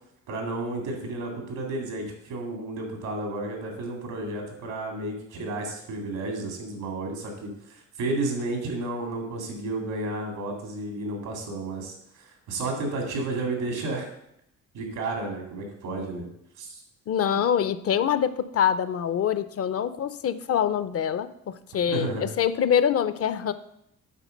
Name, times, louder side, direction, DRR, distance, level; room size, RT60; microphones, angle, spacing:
voice 1, 0.3-14.1 14.7-16.3 16.6-16.8 17.3-17.4 21.9-22.3, right 2 dB, 90° right, 2 dB, 2.4 m, -32 dB
voice 2, 17.1-23.5, left 8 dB, 50° left, 14 dB, 0.5 m, -25 dB
8.3 x 3.8 x 6.5 m, 0.77 s
cardioid pair, 90°, 30 cm